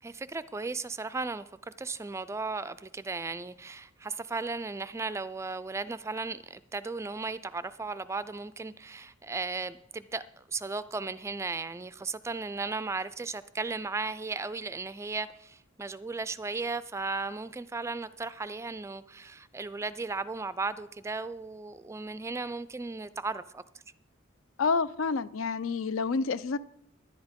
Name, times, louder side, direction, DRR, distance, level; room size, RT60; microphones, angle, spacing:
voice 1, 0.0-23.6, right 3 dB, 15° right, 0.3 m, -36 dB
voice 2, 24.6-26.6, left 4 dB, 75° left, 0.5 m, -28 dB
11.0 x 10.5 x 5.2 m
head